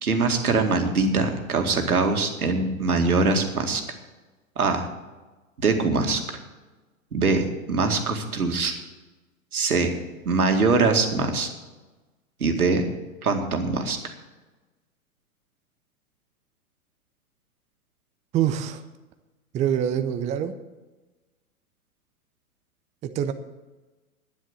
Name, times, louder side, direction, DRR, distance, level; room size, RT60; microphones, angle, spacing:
voice 1, 0.0-3.8 4.6-4.9 5.6-6.4 7.1-8.8 9.5-9.9 10.3-11.5 12.4-12.8 13.2-14.1, right 3 dB, 85° right, 4 dB, 2.2 m, -23 dB
voice 2, 18.3-18.8 19.5-20.5 23.0-23.3, right 10 dB, 15° right, 8 dB, 0.6 m, -25 dB
10.0 x 10.0 x 7.9 m, 1.2 s
hypercardioid pair, 120°, 43 cm